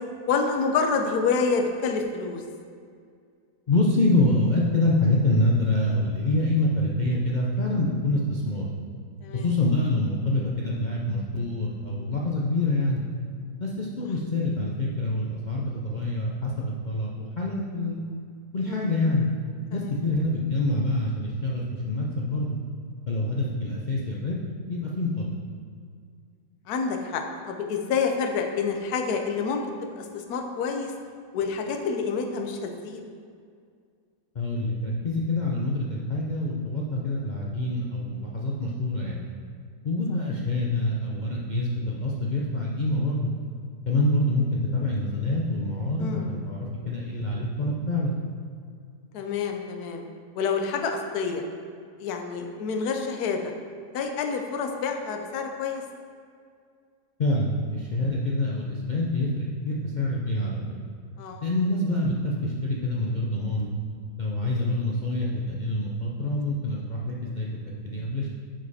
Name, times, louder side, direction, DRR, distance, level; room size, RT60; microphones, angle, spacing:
voice 1, 0.3-2.4 9.2-9.5 18.7-18.9 19.7-19.9 26.7-29.6 30.0-30.9 31.3-33.0 46.0-46.3 49.1-50.0 50.4-51.4 52.0-53.5 53.9-55.8 61.2-61.4, left 5 dB, 65° left, 4 dB, 1.2 m, -28 dB
voice 2, 3.7-8.7 9.3-13.0 13.6-18.0 18.5-19.3 19.7-22.6 23.1-24.4 24.7-25.3 34.4-39.2 39.8-43.3 43.9-48.2 57.2-60.6 61.4-63.7 64.2-68.3, left 2 dB, 80° left, -4 dB, 0.4 m, -26 dB
9.4 x 5.2 x 4.2 m, 2.2 s
omnidirectional pair, 1.9 m